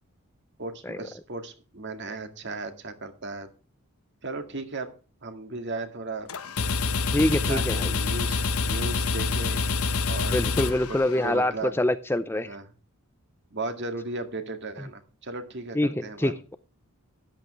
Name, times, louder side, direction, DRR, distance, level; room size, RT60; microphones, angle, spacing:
voice 1, 0.6-3.5 4.2-4.9 5.2-6.3 7.5-9.7 10.1-10.4 11.2-11.7 12.5-12.6 13.5-16.3, right 3 dB, 50° right, 7 dB, 2.0 m, -36 dB
sound 1, 6.3-11.5, left 4 dB, 80° left, 1.2 m, -27 dB
voice 2, 7.1-7.9 10.3-12.6 15.7-16.5, left 1 dB, 10° left, 12 dB, 0.5 m, -25 dB
13.5 x 11.5 x 3.1 m, 0.35 s
head